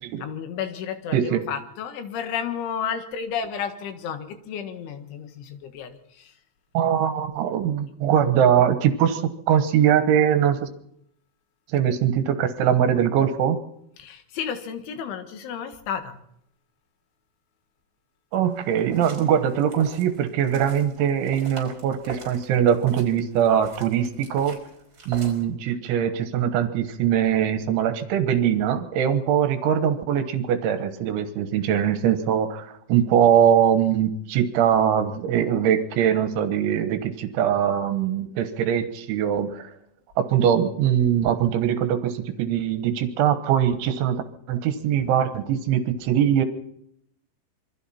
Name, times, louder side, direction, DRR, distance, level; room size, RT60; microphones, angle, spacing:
voice 1, 0.2-6.3 14.0-16.2, left 7 dB, 80° left, 7 dB, 4.1 m, -32 dB
voice 2, 6.8-10.7 11.7-13.6 18.3-24.6 25.1-39.7 40.2-44.2 44.5-46.5, right 9 dB, 80° right, 9 dB, 3.6 m, -22 dB
sound 1, 18.3-25.4, right 4 dB, 25° right, 5.5 m, -42 dB
27.0 x 23.5 x 4.3 m, 0.73 s
omnidirectional pair, 5.4 m